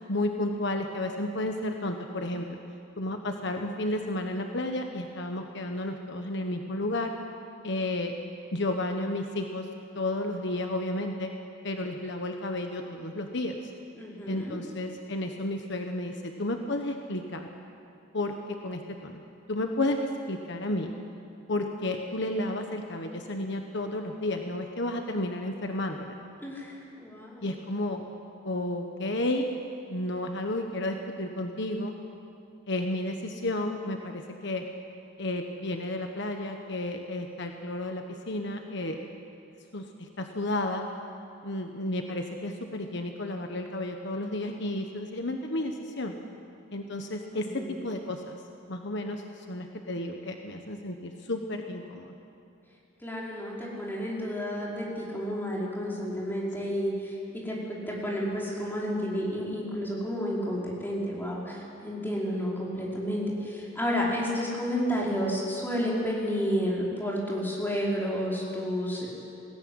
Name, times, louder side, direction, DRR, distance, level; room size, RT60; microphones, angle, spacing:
voice 1, 0.1-2.6 3.0-7.1 7.6-8.1 8.5-9.7 9.9-11.3 11.6-13.5 14.3-17.5 18.1-18.3 18.6-19.2 19.5-20.9 21.5-26.2 27.4-28.0 28.4-29.5 29.9-31.9 32.7-34.6 35.2-39.0 39.7-40.8 41.4-46.1 46.7-48.4 48.7-52.1 56.6-56.7, left 1 dB, 65° left, 4 dB, 1.4 m, -32 dB
voice 2, 14.0-14.6 26.4-27.5 47.3-47.8 53.0-69.1, equal, 10° left, -5 dB, 5.3 m, -31 dB
21.0 x 17.5 x 9.7 m, 2.6 s
head